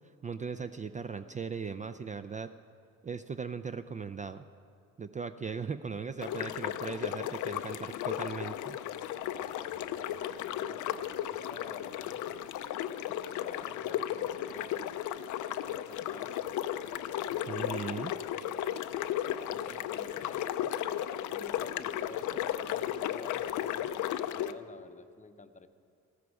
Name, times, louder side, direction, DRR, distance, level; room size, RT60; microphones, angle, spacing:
voice 1, 0.2-2.5 3.0-4.5 5.0-8.8 17.5-18.1, right 5 dB, 25° right, 10 dB, 0.4 m, -38 dB
sound 1, 6.2-24.5, left 11 dB, 80° left, 0.6 m, -35 dB
voice 2, 9.3-12.5 13.1-15.0 15.5-18.3 19.3-25.7, left 3 dB, 25° left, 9 dB, 0.7 m, -51 dB
14.5 x 13.0 x 4.8 m, 2.4 s
cardioid pair, 90°, 30 cm